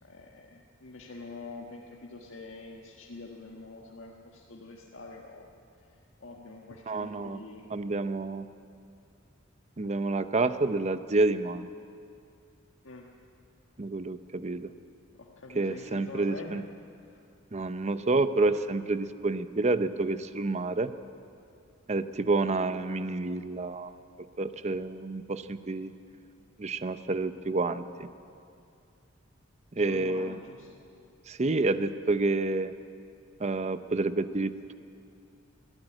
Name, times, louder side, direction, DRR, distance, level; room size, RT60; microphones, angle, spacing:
voice 1, 0.0-5.5 6.2-7.7 12.8-13.1 15.2-16.6 17.0-17.2 29.8-30.7, left 3 dB, 70° left, -2 dB, 1.6 m, -45 dB
voice 2, 6.9-7.4 7.7-8.5 9.8-11.7 13.8-14.7 15.5-16.6 17.5-20.9 21.9-23.9 24.4-25.9 26.6-28.1 29.7-30.4 31.3-32.7 33.4-34.7, right 3 dB, 35° right, 12 dB, 0.7 m, -29 dB
21.5 x 13.5 x 9.0 m, 2.5 s
head